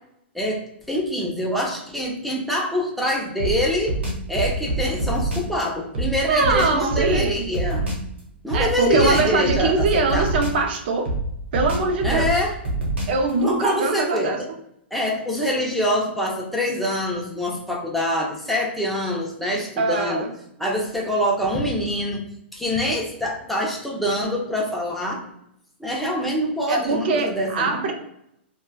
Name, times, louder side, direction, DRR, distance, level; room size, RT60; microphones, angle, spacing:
voice 1, 0.3-4.0 4.3-7.9 8.4-10.3 12.0-12.6 13.4-14.5 14.9-20.2 20.6-25.2 25.8-27.9, equal, ahead, -3 dB, 0.6 m, -25 dB
sound 1, 3.4-5.5 5.9-8.1 8.5-10.7 11.0-13.3, right 2 dB, 85° right, 1.0 m, -26 dB
voice 2, 6.3-7.5 8.5-11.1 11.5-12.3 13.1-14.4 19.8-20.3 26.7-27.9, right 3 dB, 60° right, 4 dB, 0.5 m, -22 dB
3.0 x 2.2 x 2.3 m, 0.77 s
hypercardioid pair, 130°, 6 cm